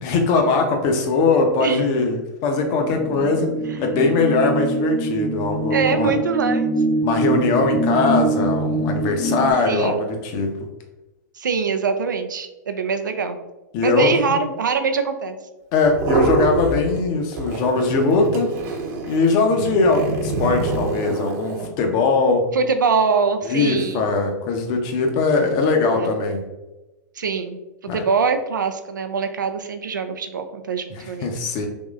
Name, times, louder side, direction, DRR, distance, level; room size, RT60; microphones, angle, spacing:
voice 1, 0.0-3.5 3.8-6.2 7.0-10.5 13.7-14.3 15.7-18.5 19.0-22.5 23.5-26.4 27.9-28.0 30.9-31.7, left 3 dB, 45° left, 4 dB, 0.7 m, -20 dB
sound 1, 2.8-9.5, right 2 dB, ahead, 0.5 m, -23 dB
voice 2, 5.7-6.7 9.7-10.0 11.4-13.4 13.8-15.4 22.5-24.1 25.9-26.1 27.2-27.6 27.9-31.3, right 5 dB, 90° right, 8 dB, 0.4 m, -23 dB
sound 2, 15.8-17.1 17.3-21.7, right 3 dB, 55° right, 1.0 m, -26 dB
3.6 x 3.0 x 2.4 m, 1.0 s
hypercardioid pair, 115°, 10 cm